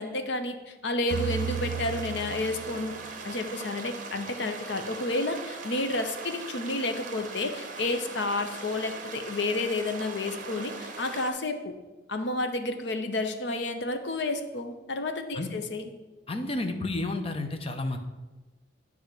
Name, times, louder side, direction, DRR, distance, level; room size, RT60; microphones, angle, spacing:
voice 1, 0.0-2.9 3.2-11.8 12.1-15.9, left 2 dB, 65° left, 7 dB, 0.8 m, -31 dB
sound 1, 1.1-11.3, right 4 dB, 45° right, 0.9 m, -40 dB
sound 2, 1.1-3.3, right 8 dB, 75° right, 0.3 m, -34 dB
voice 2, 16.3-18.0, left 2 dB, 30° left, 5 dB, 0.7 m, -31 dB
9.7 x 3.5 x 6.5 m, 1.2 s
head